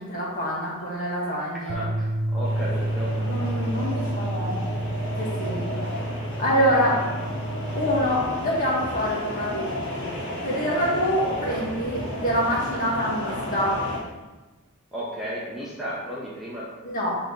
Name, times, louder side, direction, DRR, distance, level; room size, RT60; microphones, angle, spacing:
voice 1, 0.0-1.8 3.2-4.6 5.1-5.8 6.4-6.9 7.7-9.7 10.4-13.8 16.8-17.2, equal, 40° left, -5 dB, 1.8 m, -25 dB
voice 2, 0.8-3.2 6.8-7.0 11.2-11.6 14.9-16.8, right 1 dB, ahead, -8 dB, 0.9 m, -35 dB
sound 1, 1.7-8.0, right 1 dB, 80° right, 0.6 m, -29 dB
sound 2, 2.4-14.0, equal, 55° left, 1.8 m, -33 dB
7.2 x 3.4 x 4.0 m, 1.2 s
head